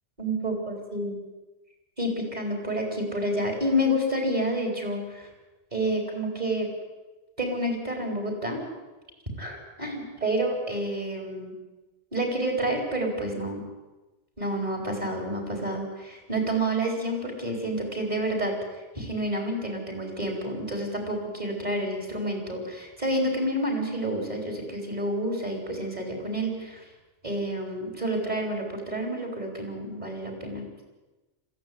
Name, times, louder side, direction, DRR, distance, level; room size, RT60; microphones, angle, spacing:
voice 1, 0.2-1.2 2.0-5.3 5.7-6.7 7.4-8.6 9.4-11.5 12.1-13.6 14.4-18.6 18.9-26.8 27.2-30.6, right 1 dB, 35° right, 2 dB, 5.0 m, -29 dB
21.5 x 15.5 x 9.7 m, 1.1 s
omnidirectional pair, 1.2 m